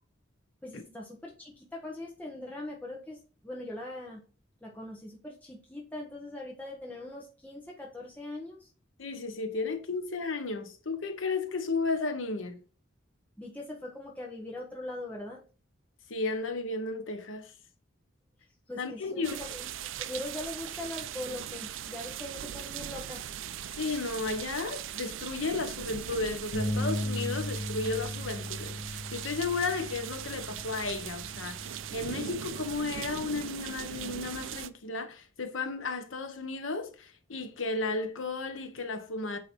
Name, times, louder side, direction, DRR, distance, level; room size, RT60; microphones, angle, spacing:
voice 1, 0.6-4.2 4.6-8.7 13.4-15.4 18.7-19.7 20.0-23.3, left 1 dB, 10° left, 0.9 m, -41 dB
voice 2, 9.0-12.6 16.1-17.5 18.8-19.4 23.8-39.4, left 3 dB, 85° left, 1.0 m, -34 dB
sound 1, 19.2-34.7, right 10 dB, 80° right, 0.4 m, -40 dB
Bass guitar, 26.5-32.8, left 1 dB, 50° left, 1.1 m, -37 dB
8.4 x 2.9 x 4.4 m
head